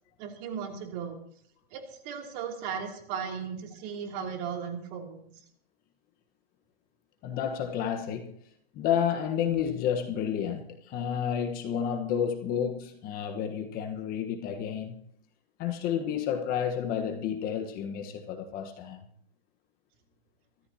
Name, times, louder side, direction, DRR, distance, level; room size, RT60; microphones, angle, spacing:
voice 1, 0.2-1.2 1.7-5.2, right 7 dB, 40° right, 2.9 m, -36 dB
voice 2, 7.2-8.3 8.7-15.0 15.6-19.0, left 8 dB, 30° left, 1.3 m, -30 dB
24.5 x 13.5 x 2.9 m
hypercardioid pair, 145°, 31 cm